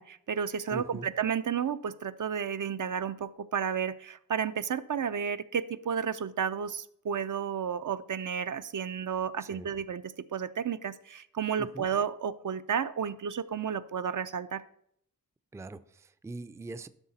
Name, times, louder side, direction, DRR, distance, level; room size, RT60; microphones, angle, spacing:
voice 1, 0.0-14.6, right 7 dB, 55° right, 12 dB, 0.5 m, -32 dB
voice 2, 0.7-1.1 9.4-9.7 11.6-11.9 15.5-16.9, right 2 dB, 10° right, 12 dB, 0.4 m, -42 dB
11.5 x 5.8 x 4.1 m, 0.70 s
cardioid pair, 60°, 37 cm